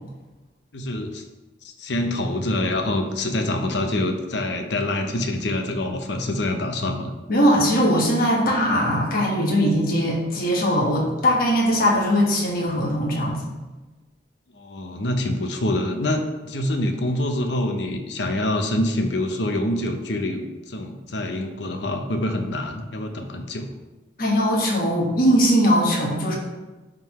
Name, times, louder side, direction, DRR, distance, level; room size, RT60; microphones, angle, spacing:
voice 1, 0.7-1.2 1.6-7.1 14.5-23.7, left 1 dB, 70° left, 5 dB, 0.8 m, -26 dB
voice 2, 7.3-13.4 24.2-26.3, equal, 50° left, -3 dB, 1.4 m, -20 dB
10.0 x 3.8 x 3.1 m, 1.1 s
head